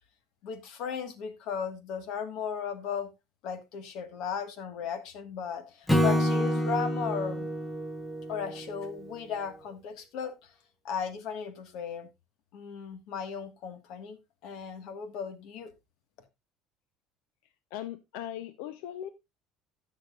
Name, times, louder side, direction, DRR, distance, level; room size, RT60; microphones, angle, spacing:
voice 1, 0.4-3.1 3.4-7.5 8.3-10.5 10.8-12.1 12.5-14.2 14.4-15.7, left 7 dB, 55° left, 1.5 m, -36 dB
Acoustic guitar / Strum, 5.9-9.2, equal, 5° left, 0.8 m, -28 dB
voice 2, 17.7-19.1, left 11 dB, 85° left, 0.7 m, -38 dB
17.5 x 6.5 x 2.4 m
cardioid pair, 175°, 0 cm